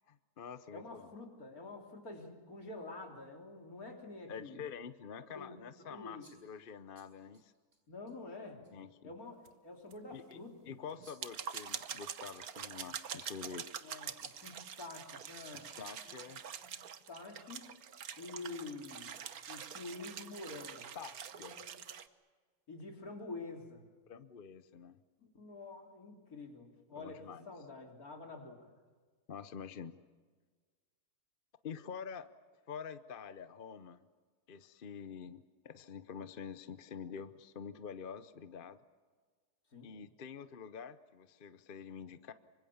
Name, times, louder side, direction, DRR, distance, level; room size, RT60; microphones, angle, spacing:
voice 1, 0.1-1.1 4.3-7.5 8.7-9.1 10.1-13.6 15.5-16.4 20.9-21.7 24.1-25.0 27.0-27.4 29.3-30.0 31.6-32.3 32.7-34.0 34.5-38.8 39.8-42.3, left 6 dB, 45° left, 12 dB, 0.8 m, -47 dB
voice 2, 0.7-4.6 5.3-5.6 5.9-6.3 7.9-8.6 9.0-10.5 13.8-15.7 16.1-16.2 16.6-16.7 17.1-17.7 18.2-19.1 19.5-20.9 21.4-21.7 22.7-23.9 25.2-28.7 39.7-40.0, left 3 dB, 65° left, 2 dB, 3.8 m, -48 dB
sound 1, 6.2-7.8 8.1-8.2 8.6-8.7 11.0-11.4 13.7-13.8 14.2-14.6 15.4-15.8 16.2-17.2, right 2 dB, 50° right, 6.3 m, -63 dB
sound 2, 9.4-9.5 9.9-10.0 10.3-10.4 11.0-22.1, right 8 dB, 70° right, 1.5 m, -45 dB
26.5 x 25.0 x 7.2 m, 1.5 s
omnidirectional pair, 1.7 m